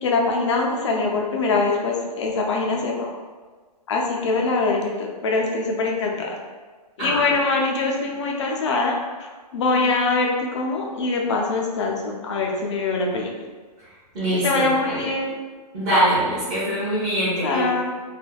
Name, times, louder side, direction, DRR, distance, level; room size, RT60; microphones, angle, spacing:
voice 1, 0.0-3.1 3.9-6.3 7.0-9.0 9.2-13.3 14.4-15.4 17.4-17.9, left 3 dB, 45° left, 0 dB, 0.4 m, -23 dB
voice 2, 7.0-7.3 14.1-15.1 15.7-17.7, right 1 dB, 20° right, -12 dB, 0.7 m, -23 dB
3.3 x 2.1 x 2.2 m, 1.4 s
hypercardioid pair, 165°, 21 cm